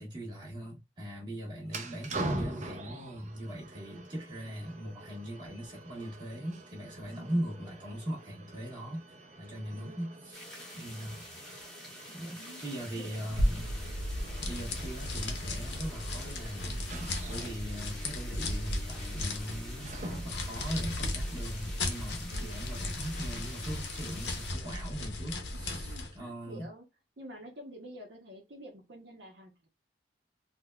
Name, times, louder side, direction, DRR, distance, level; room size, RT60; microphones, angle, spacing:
voice 1, 0.0-9.0 9.4-10.4 10.8-11.2 12.1-13.7 14.4-26.7, equal, 25° right, 1.4 m, -40 dB
sound 1, 1.6-20.6, right 1 dB, 40° right, 0.5 m, -44 dB
voice 2, 7.1-7.5 9.7-10.2 10.7-11.2 12.1-13.9 22.3-22.7 25.8-26.8 27.2-29.7, equal, 75° right, 0.8 m, -50 dB
sound 2, 10.3-24.5, left 1 dB, 5° left, 1.1 m, -49 dB
sound 3, 13.3-26.2, left 1 dB, 70° left, 0.7 m, -35 dB
3.9 x 2.1 x 2.2 m
head